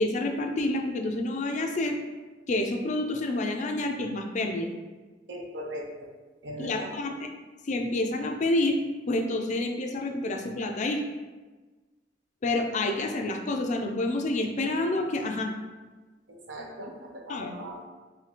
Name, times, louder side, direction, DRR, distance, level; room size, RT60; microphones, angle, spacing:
voice 1, 0.0-2.0 2.5-4.7 6.6-7.3 7.6-8.8 9.1-11.0 12.4-15.5 17.3-17.6, left 2 dB, 40° left, 4 dB, 0.4 m, -28 dB
voice 2, 5.3-5.9 6.4-6.9 16.3-16.9 17.3-17.9, equal, 75° right, 0 dB, 0.6 m, -38 dB
2.8 x 2.7 x 4.1 m, 1.3 s
head